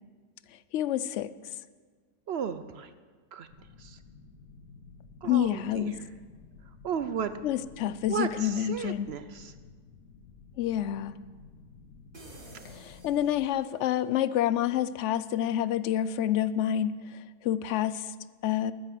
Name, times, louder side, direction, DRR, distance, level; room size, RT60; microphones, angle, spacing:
voice 1, 0.7-1.3 5.2-6.0 7.4-9.1 10.6-11.1 12.7-18.1 18.4-18.7, left 11 dB, 70° left, 15 dB, 0.7 m, -28 dB
voice 2, 2.3-2.9 3.3-4.0 5.2-6.1 6.7-7.3 8.1-9.5, right 7 dB, 65° right, 11 dB, 0.6 m, -35 dB
sound 1, 3.5-13.5, left 4 dB, 90° left, 1.7 m, -53 dB
sound 2, 12.1-14.0, right 1 dB, 35° right, 2.0 m, -51 dB
13.5 x 9.7 x 7.7 m, 1.5 s
omnidirectional pair, 1.7 m